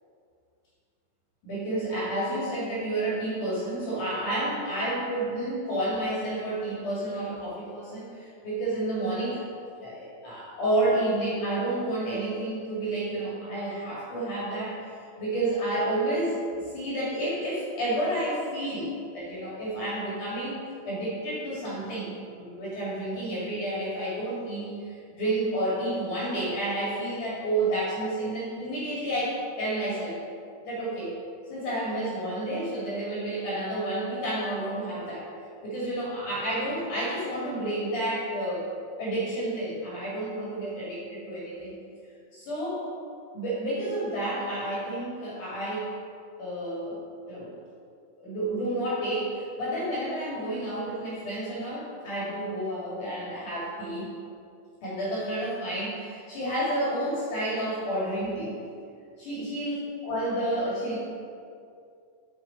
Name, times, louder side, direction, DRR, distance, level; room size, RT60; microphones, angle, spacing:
voice 1, 1.4-9.4 9.8-14.9 15.2-16.4 16.7-20.6 20.9-30.2 30.6-31.2 31.5-35.3 35.6-38.7 39.0-41.7 42.3-42.8 43.3-45.9 46.4-47.0 47.3-47.5 48.2-54.1 54.8-58.6 59.2-61.0, right 1 dB, 60° left, -7 dB, 3.5 m, -30 dB
7.9 x 6.9 x 5.2 m, 2.3 s
omnidirectional pair, 4.3 m